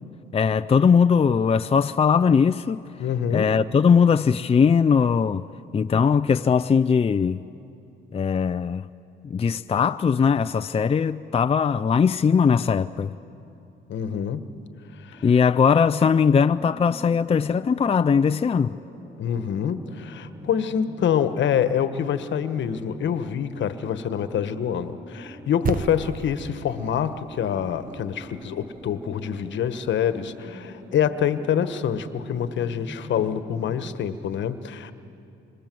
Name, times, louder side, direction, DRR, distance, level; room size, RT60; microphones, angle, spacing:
voice 1, 0.3-2.8 3.3-5.5 5.7-7.5 8.1-8.9 9.2-13.1 15.2-18.8, left 6 dB, 30° left, 0.5 m, -20 dB
voice 2, 3.0-3.5 13.9-14.5 15.0-15.3 19.2-34.9, left 8 dB, 70° left, 1.3 m, -26 dB
sound 1, 15.1-34.0, equal, 10° right, 7.7 m, -45 dB
sound 2, 25.7-30.2, right 7 dB, 45° right, 1.0 m, -35 dB
26.5 x 26.0 x 7.8 m
cardioid pair, 90°, 20 cm